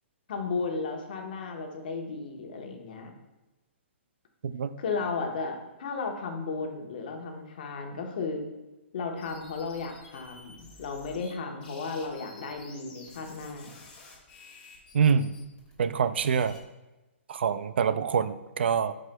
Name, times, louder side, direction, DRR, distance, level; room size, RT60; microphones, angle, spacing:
voice 1, 0.3-3.1 4.8-8.4 8.9-13.7, left 4 dB, 45° left, 3 dB, 1.1 m, -34 dB
sound 1, 9.2-11.3 11.6-16.6, left 3 dB, 20° left, 1.4 m, -52 dB
voice 2, 14.9-15.4 15.8-16.6 17.3-18.9, right 6 dB, 60° right, 13 dB, 0.3 m, -25 dB
9.9 x 4.9 x 2.2 m, 1.1 s
hypercardioid pair, 175°, 7 cm